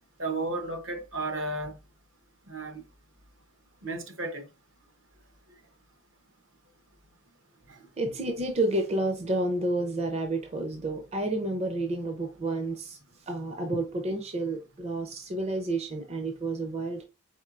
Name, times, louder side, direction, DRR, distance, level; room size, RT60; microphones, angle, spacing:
voice 1, 0.2-1.7 2.5-2.8 3.8-4.5 7.7-7.8, right 2 dB, 65° right, 0.9 m, -33 dB
voice 2, 8.0-13.0 13.3-17.1, right 2 dB, 30° right, 0.5 m, -30 dB
4.3 x 3.8 x 2.5 m
head